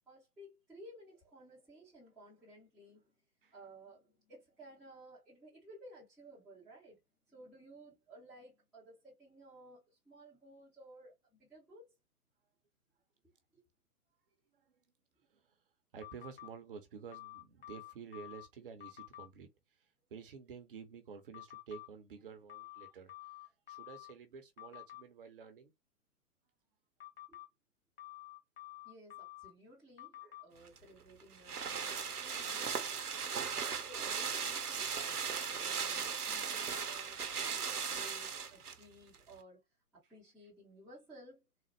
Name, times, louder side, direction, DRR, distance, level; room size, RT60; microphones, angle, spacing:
voice 1, 0.1-3.1 3.4-7.0 7.3-11.9 13.5-13.6 27.3-27.4 28.8-32.8 33.4-39.6 40.1-41.5, right 1 dB, ahead, 0.6 m, -57 dB
voice 2, 15.9-19.5 20.1-23.1 23.7-25.7 30.2-30.3, right 6 dB, 35° right, 0.8 m, -50 dB
sound 1, 16.0-16.5 17.1-18.5 18.8-19.3 21.3-21.9 22.5-24.1 24.6-25.0 27.0-27.5 28.0-29.5 30.0-30.4, left 17 dB, 40° left, 0.8 m, -50 dB
sound 2, 30.7-38.8 39.1-39.2, right 6 dB, 75° right, 0.9 m, -37 dB
3.9 x 2.1 x 3.2 m
figure-of-eight pair, 130°, 46 cm